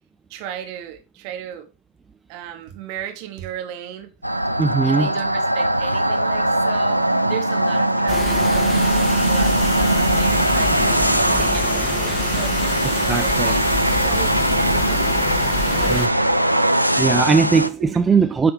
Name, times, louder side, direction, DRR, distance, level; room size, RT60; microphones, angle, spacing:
voice 1, 0.3-1.7 2.3-4.1 4.8-15.4 15.7-16.0 16.9-17.3 18.3-18.4, right 9 dB, 45° right, 1.5 m, -36 dB
sound 1, 4.2-17.7, right 1 dB, 90° right, 0.4 m, -20 dB
voice 2, 4.6-5.1 12.8-13.6 15.9-16.2 17.0-18.5, right 5 dB, 15° right, 0.4 m, -19 dB
sound 2, 8.1-16.1, left 2 dB, 15° left, 1.6 m, -27 dB
9.8 x 3.5 x 4.8 m
figure-of-eight pair, 90°, 0 cm